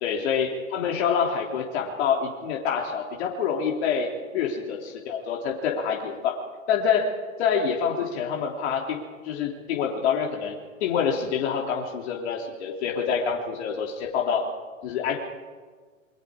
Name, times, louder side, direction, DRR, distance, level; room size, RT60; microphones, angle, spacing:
voice 1, 0.0-6.3 6.7-7.1 7.4-14.4 14.8-15.2, left 6 dB, 55° left, -1 dB, 3.3 m, -26 dB
27.5 x 23.5 x 4.9 m, 1.5 s
hypercardioid pair, 130°, 40 cm